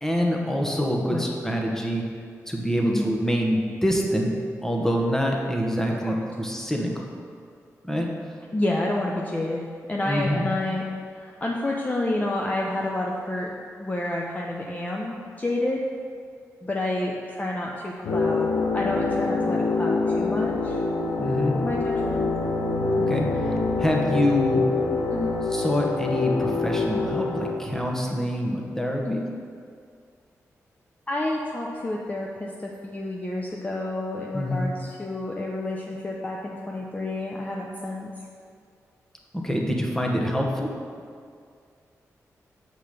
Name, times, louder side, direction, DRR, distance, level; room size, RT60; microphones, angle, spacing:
voice 1, 0.0-2.1 2.5-4.3 4.6-7.1 7.8-8.1 10.0-10.4 21.2-21.5 22.9-24.7 25.5-29.2 34.3-34.7 39.3-40.7, equal, 10° left, 0 dB, 1.4 m, -26 dB
voice 2, 8.5-9.6 9.9-10.8 11.1-13.5 13.8-15.8 16.6-20.8 21.5-22.2 25.1-25.4 29.0-29.2 31.1-38.1, left 1 dB, 25° left, -2 dB, 0.8 m, -29 dB
sound 1, 18.0-27.5, left 3 dB, 85° left, 0.9 m, -25 dB
5.9 x 5.1 x 6.7 m, 2.2 s
cardioid pair, 55°, 6 cm